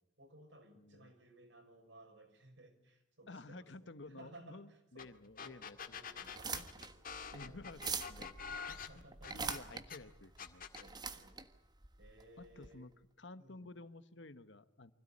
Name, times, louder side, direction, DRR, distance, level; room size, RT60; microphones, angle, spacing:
voice 1, 0.2-5.1 5.4-6.9 7.3-7.6 8.7-9.7 10.8-11.4 12.0-12.9 13.4-13.8, right 1 dB, 75° right, 5 dB, 5.7 m, -60 dB
voice 2, 0.8-1.1 3.3-5.8 6.2-6.6 7.3-9.0 9.3-10.7 12.4-12.9 13.2-14.9, left 2 dB, 70° left, 12 dB, 1.3 m, -53 dB
sound 1, 5.0-5.1 5.4-10.0 10.4-10.9, left 6 dB, 50° left, 1.9 m, -46 dB
sound 2, 6.2-12.7, right 5 dB, 20° right, 1.4 m, -44 dB
25.0 x 16.5 x 9.9 m, 0.83 s
head